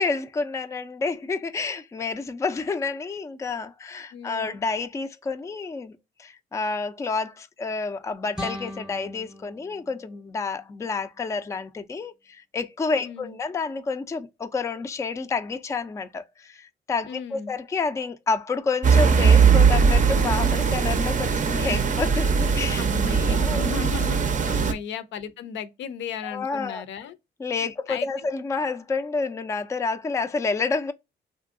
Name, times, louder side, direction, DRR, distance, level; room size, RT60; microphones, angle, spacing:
voice 1, 0.0-22.8 23.3-23.7 24.5-24.7 26.2-26.8 27.4-30.9, left 4 dB, 15° left, 0.3 m, -29 dB
voice 2, 4.1-4.6 13.0-13.4 17.1-17.5 22.8-27.2 27.6-28.1, left 6 dB, 70° left, 0.5 m, -35 dB
sound 1, 8.3-11.4, left 1 dB, 5° right, 0.7 m, -40 dB
sound 2, 18.8-24.7, right 6 dB, 40° right, 0.5 m, -20 dB
3.0 x 2.5 x 2.5 m
cardioid pair, 90°, 20 cm